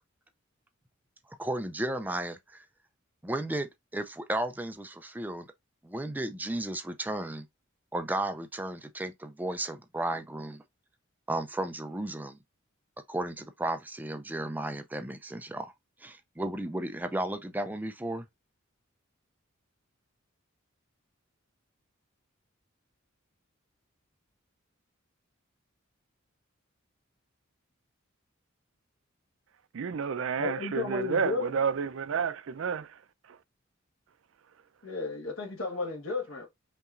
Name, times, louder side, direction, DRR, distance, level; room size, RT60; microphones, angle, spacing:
voice 1, 1.4-2.6 3.2-5.5 5.8-7.5 7.9-10.6 11.3-12.4 13.1-15.7 16.0-18.3, right 1 dB, 10° right, 0.4 m, -34 dB
voice 2, 29.7-33.0 33.3-33.4, right 6 dB, 70° right, 0.4 m, -30 dB
voice 3, 30.4-31.4 34.8-36.5, left 3 dB, 85° left, 1.4 m, -33 dB
5.4 x 2.9 x 2.5 m
head